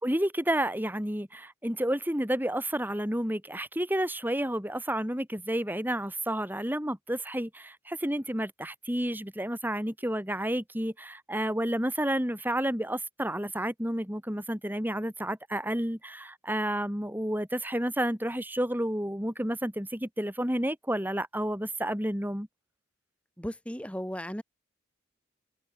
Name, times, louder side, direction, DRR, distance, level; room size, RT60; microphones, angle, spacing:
voice 1, 0.0-22.5, right 1 dB, 10° right, 5.7 m, -30 dB
voice 2, 23.4-24.4, equal, 5° left, 4.7 m, -35 dB
head